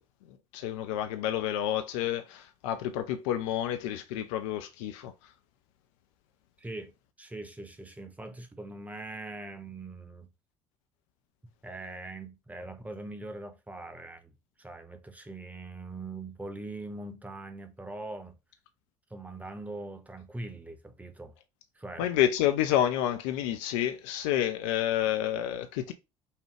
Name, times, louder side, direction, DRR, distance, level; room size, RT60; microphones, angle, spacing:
voice 1, 0.5-5.1 22.0-25.9, left 11 dB, 70° left, 0.5 m, -29 dB
voice 2, 6.6-6.9 7.2-10.3 11.6-18.4 19.1-21.3 21.7-22.1, right 2 dB, 10° right, 0.9 m, -42 dB
5.5 x 2.3 x 3.2 m
figure-of-eight pair, 55°, 17 cm